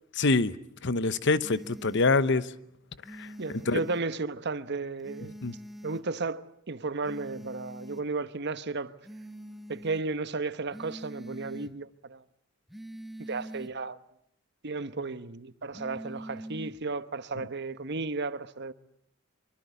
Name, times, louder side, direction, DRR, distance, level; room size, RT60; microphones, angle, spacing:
voice 1, 0.2-0.5 0.8-2.5 3.1-3.8 5.4-5.5, left 3 dB, 60° left, 1.0 m, -26 dB
sound 1, 1.4-2.0 3.0-4.0 5.0-6.0 7.0-8.0 9.0-10.0 10.7-11.7 12.7-13.7 15.7-16.8, right 1 dB, ahead, 1.3 m, -44 dB
voice 2, 3.4-5.3 5.8-8.9 9.7-12.2 13.2-14.0 14.6-18.7, right 3 dB, 55° right, 1.1 m, -34 dB
24.5 x 24.5 x 8.4 m
head